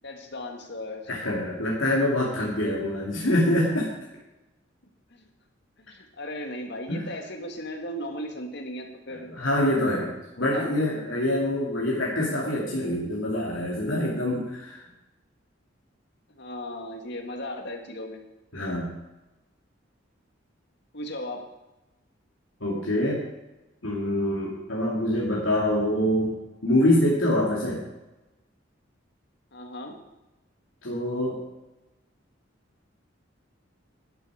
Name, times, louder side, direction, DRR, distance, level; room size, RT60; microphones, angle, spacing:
voice 1, 0.0-1.1 5.1-5.3 5.8-9.3 10.4-10.7 16.4-18.2 20.9-21.4 29.5-30.0, left 1 dB, 60° left, 4 dB, 2.0 m, -36 dB
voice 2, 1.1-3.9 6.9-7.0 9.1-14.8 18.5-18.9 22.6-23.2 23.8-26.3 26.6-27.8 30.8-31.4, left 1 dB, 85° left, -5 dB, 2.7 m, -25 dB
11.5 x 11.5 x 5.0 m, 1.0 s
head